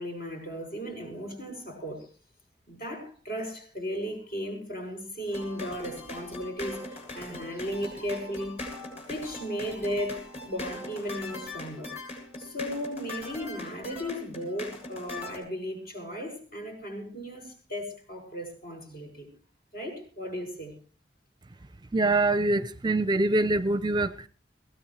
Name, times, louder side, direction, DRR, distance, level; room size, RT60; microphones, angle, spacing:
voice 1, 0.0-2.1 2.7-8.6 9.1-12.0 12.4-19.3 19.7-20.7, equal, 55° left, 6.6 m, -36 dB
sound 1, 5.3-15.4, left 2 dB, 35° left, 7.0 m, -40 dB
voice 2, 21.9-24.3, right 2 dB, 25° right, 0.6 m, -24 dB
22.5 x 17.0 x 3.3 m
head